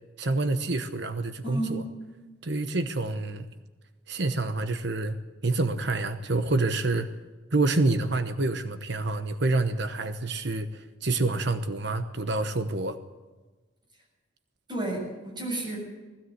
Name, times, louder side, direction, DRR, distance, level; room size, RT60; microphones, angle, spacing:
voice 1, 0.2-1.8 2.4-3.5 4.1-5.2 5.4-7.1 7.5-13.0, right 2 dB, 60° right, 9 dB, 1.0 m, -27 dB
voice 2, 1.4-1.8 14.7-15.8, right 2 dB, 20° right, -1 dB, 7.5 m, -31 dB
20.0 x 16.0 x 8.0 m, 1.2 s
head